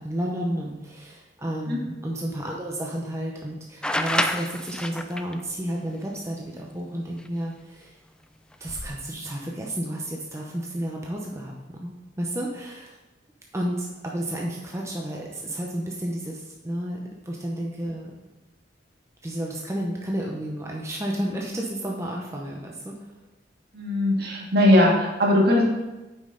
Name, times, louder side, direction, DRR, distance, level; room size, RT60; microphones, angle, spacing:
voice 1, 0.0-8.0 8.6-13.0 13.5-18.1 19.2-23.1, right 1 dB, 15° right, -2 dB, 0.7 m, -31 dB
sound 1, 3.8-5.3 7.3-7.4 8.5-8.9, left 1 dB, 5° left, 0.3 m, -27 dB
voice 2, 23.7-25.6, left 1 dB, 60° right, -2 dB, 1.8 m, -19 dB
8.9 x 5.4 x 3.8 m, 1.1 s
head